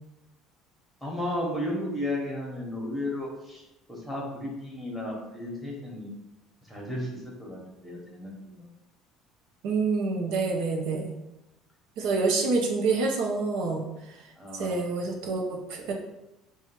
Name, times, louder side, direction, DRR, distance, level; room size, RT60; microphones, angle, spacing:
voice 1, 1.0-3.6 3.9-6.1 6.7-8.7 14.4-14.8, left 1 dB, ahead, -3 dB, 1.3 m, -34 dB
voice 2, 9.6-11.1 12.0-14.2 14.6-15.9, right 4 dB, 70° right, 1 dB, 0.7 m, -27 dB
4.3 x 2.4 x 4.5 m, 0.91 s
cardioid pair, 140°, 0 cm